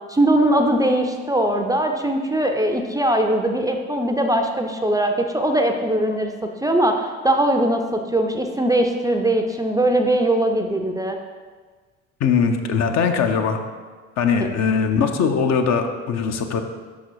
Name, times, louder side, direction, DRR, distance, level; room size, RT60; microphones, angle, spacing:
voice 1, 0.1-6.3 6.6-11.2, right 1 dB, 10° right, 4 dB, 0.5 m, -20 dB
voice 2, 12.2-13.6 14.2-16.6, left 6 dB, 50° left, 5 dB, 0.7 m, -20 dB
5.9 x 4.0 x 4.6 m, 1.5 s
figure-of-eight pair, 50°, 36 cm